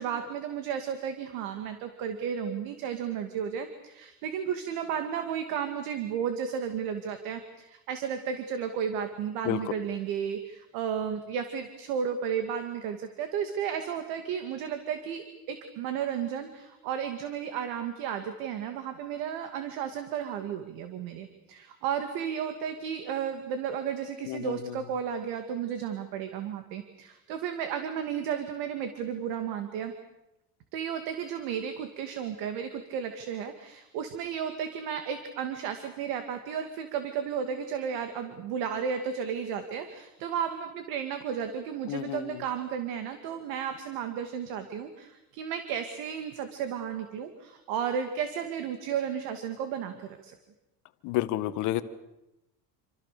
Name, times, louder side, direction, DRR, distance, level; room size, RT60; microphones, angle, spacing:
voice 1, 0.0-29.9 30.7-50.4, right 8 dB, 65° right, 7 dB, 2.4 m, -33 dB
voice 2, 24.3-24.8 41.9-42.4 51.0-51.8, left 15 dB, 55° left, 11 dB, 1.6 m, -30 dB
28.0 x 26.5 x 6.8 m, 0.92 s
cardioid pair, 175°, 38 cm